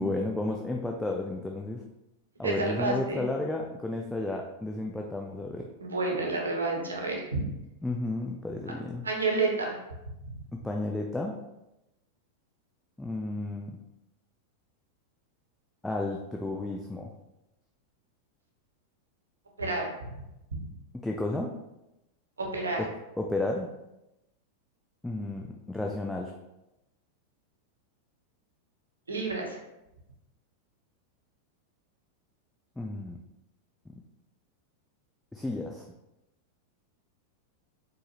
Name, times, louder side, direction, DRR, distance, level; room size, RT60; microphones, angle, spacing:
voice 1, 0.0-1.8 2.4-5.7 7.8-9.1 10.5-11.4 13.0-13.8 15.8-17.1 21.0-21.5 23.2-23.7 25.0-26.3 32.8-33.2 33.9-34.0 35.3-35.8, left 2 dB, 5° left, 0 dB, 0.3 m, -32 dB
voice 2, 2.4-3.2 5.8-7.5 9.0-9.8 19.6-19.9 22.4-22.8 29.1-29.5, right 3 dB, 75° right, 0 dB, 0.7 m, -29 dB
4.3 x 2.1 x 3.0 m, 0.92 s
figure-of-eight pair, 90°, 0 cm